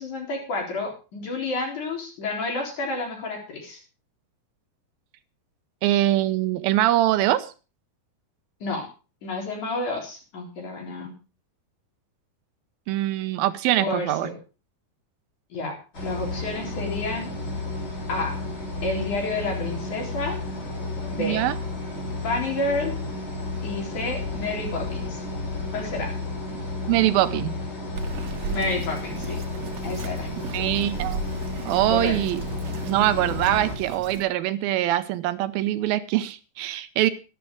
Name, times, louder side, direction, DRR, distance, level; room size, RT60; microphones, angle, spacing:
voice 1, 0.0-3.8 8.6-8.9 9.2-11.1 13.8-14.4 15.5-15.8 16.0-17.3 18.1-18.4 18.8-20.4 21.1-21.4 22.2-22.9 23.6-25.2 25.7-26.1 28.5-29.4 29.8-30.3 31.9-32.2 32.5-32.8, left 2 dB, 55° left, 0 dB, 5.3 m, -30 dB
voice 2, 5.8-7.5 12.9-14.3 21.2-21.6 26.9-27.6 30.5-31.2 31.7-32.4 32.9-37.1, right 14 dB, 80° right, 12 dB, 2.6 m, -23 dB
sound 1, 15.9-33.8, left 2 dB, 30° left, 6.1 m, -32 dB
Bird vocalization bird call bird song, 28.0-34.2, right 5 dB, 60° right, 2.2 m, -36 dB
12.5 x 11.5 x 4.8 m, 0.33 s
omnidirectional pair, 4.3 m